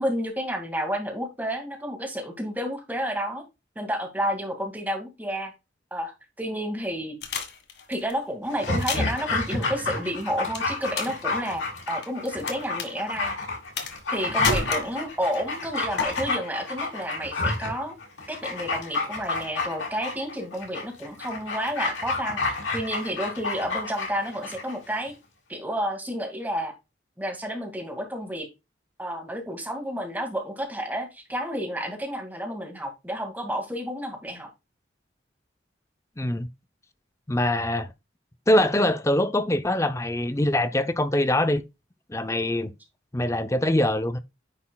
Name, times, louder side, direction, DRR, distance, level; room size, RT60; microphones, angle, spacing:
voice 1, 0.0-3.4 3.8-5.5 5.9-7.2 7.9-13.3 14.1-18.0 18.3-22.4 22.7-25.1 25.5-26.7 27.2-28.5 29.0-34.5, equal, 10° right, 2.1 m, -30 dB
sound 1, 7.2-8.1 8.7-9.2 10.5-11.2 11.4-12.5 12.8-12.9 13.8-14.1 14.4-15.3 16.0-16.1, left 4 dB, 60° left, 1.7 m, -29 dB
Dog, 8.5-24.8 25.1-25.2, left 3 dB, 85° left, 5.4 m, -30 dB
voice 2, 36.2-36.5 37.3-37.9 38.5-41.6 42.1-42.7 43.1-44.2, left 1 dB, 15° left, 0.6 m, -23 dB
9.7 x 6.4 x 2.3 m
head